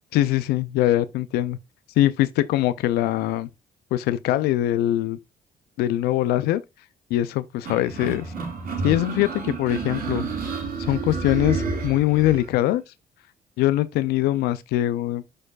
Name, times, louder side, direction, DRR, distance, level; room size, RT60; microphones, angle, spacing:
voice 1, 0.1-1.6 2.0-3.5 3.9-5.2 5.8-6.6 7.1-8.3 8.8-10.3 10.9-12.8 13.6-15.2, left 14 dB, 90° left, 0.4 m, -22 dB
sound 1, 7.7-12.5, right 4 dB, 60° right, 4.3 m, -30 dB
9.8 x 4.4 x 2.4 m
cardioid pair, 85°, 16 cm